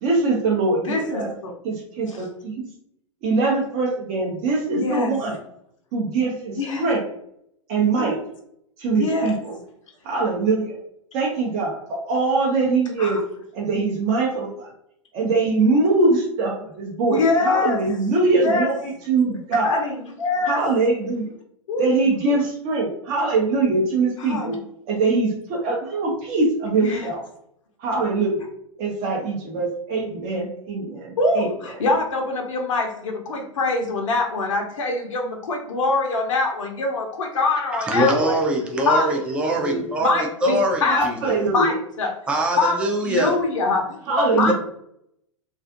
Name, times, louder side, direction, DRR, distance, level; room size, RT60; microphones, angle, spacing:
voice 1, 0.0-1.3 1.6-2.7 3.2-5.3 5.9-7.0 7.7-8.2 8.8-9.5 10.0-10.8 11.1-11.8 12.1-13.2 13.5-14.7 15.1-19.8 20.5-21.3 21.8-24.6 24.9-27.2 27.8-28.5 28.8-31.8 39.6-39.9 40.9-41.7 44.1-44.5, right 3 dB, 40° right, -3 dB, 0.7 m, -22 dB
voice 2, 0.9-1.5 2.1-2.2 4.7-5.1 6.6-6.9 8.0-8.1 8.9-9.3 13.0-13.2 17.1-17.8 18.4-18.7 19.6-20.6 21.7-21.9 24.2-24.6 26.7-27.1 31.2-38.4 38.9-39.2 40.0-41.1 41.5-42.1 42.6-42.8 43.0-43.8 44.4-44.5, left 3 dB, 70° left, 2 dB, 0.6 m, -23 dB
voice 3, 37.7-41.3 42.3-43.4 44.4-44.5, right 1 dB, 5° right, 1 dB, 0.4 m, -23 dB
2.4 x 2.4 x 2.5 m, 0.72 s
figure-of-eight pair, 100°, 17 cm